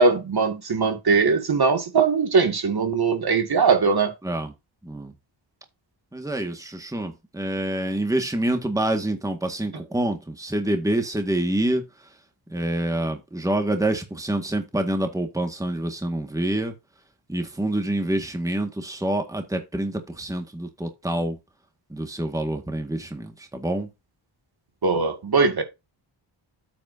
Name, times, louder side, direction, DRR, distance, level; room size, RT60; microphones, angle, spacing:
voice 1, 0.0-4.1 24.8-25.6, right 4 dB, 55° right, 2.2 m, -20 dB
voice 2, 4.2-4.5 4.8-5.1 6.1-11.8 12.5-16.7 17.3-21.4 21.9-23.9, right 1 dB, 5° right, 1.8 m, -27 dB
8.8 x 8.3 x 2.7 m
cardioid pair, 80°, 46 cm